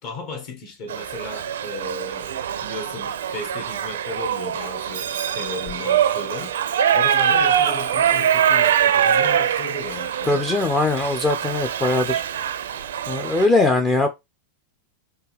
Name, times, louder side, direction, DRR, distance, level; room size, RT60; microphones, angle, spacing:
voice 1, 0.0-2.4 2.6-6.5 6.9-10.5, left 3 dB, 40° left, 1.6 m, -35 dB
Shout / Livestock farm animals working animals, 0.9-13.5, right 9 dB, 60° right, 0.4 m, -23 dB
sound 1, 4.9-6.2 6.6-6.7 7.1-7.2 7.5-7.8 8.1-8.3 8.6-8.8 9.1-9.3 9.6-9.7 12.7-12.8, left 4 dB, 65° left, 1.3 m, -45 dB
voice 2, 10.3-12.2 12.5-12.7 13.1-14.1, left 2 dB, 15° left, 0.6 m, -21 dB
4.5 x 3.3 x 3.3 m
figure-of-eight pair, 90°, 0 cm